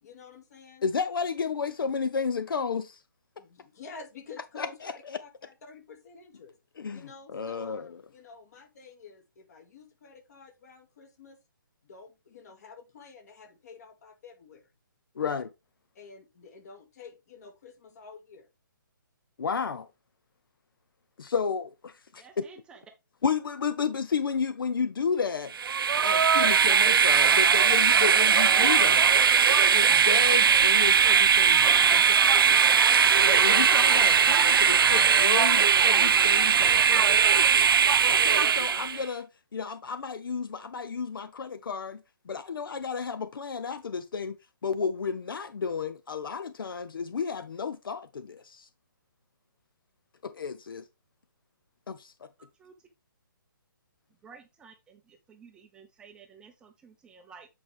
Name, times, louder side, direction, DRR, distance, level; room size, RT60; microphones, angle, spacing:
voice 1, 0.0-0.8 3.3-6.5 6.9-7.8 8.1-11.4 11.8-14.7 15.2-15.4 15.9-18.5, left 4 dB, 50° left, 2.3 m, -49 dB
voice 2, 0.8-3.0 4.6-5.2 6.8-7.0 7.3-8.0 15.2-15.5 19.4-19.9 21.2-22.4 23.2-25.5 26.0-29.1 29.7-32.8 33.2-37.7 38.0-44.4 44.6-48.7 50.2-50.8 51.9-52.1, left 6 dB, 75° left, 0.7 m, -32 dB
voice 3, 22.2-22.8 52.6-52.7 54.2-57.5, right 5 dB, 10° right, 0.5 m, -52 dB
Train, 25.5-39.0, right 7 dB, 90° right, 0.4 m, -20 dB
8.5 x 4.6 x 3.5 m
hypercardioid pair, 160°, 12 cm